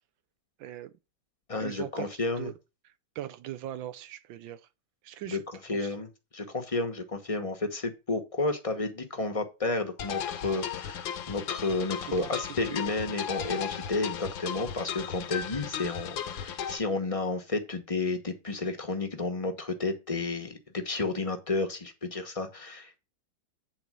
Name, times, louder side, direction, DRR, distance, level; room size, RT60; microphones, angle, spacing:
voice 1, 0.6-0.9 1.6-2.1 2.4-2.5 2.8-4.7 5.0-5.4 5.7-6.0 12.1-12.8, right 12 dB, 75° right, 1.4 m, -40 dB
voice 2, 1.5-2.5 5.3-5.4 5.7-6.1 6.3-23.0, left 3 dB, 25° left, 0.7 m, -31 dB
sound 1, 10.0-16.8, left 8 dB, 75° left, 1.6 m, -36 dB
8.8 x 4.1 x 6.1 m
omnidirectional pair, 2.2 m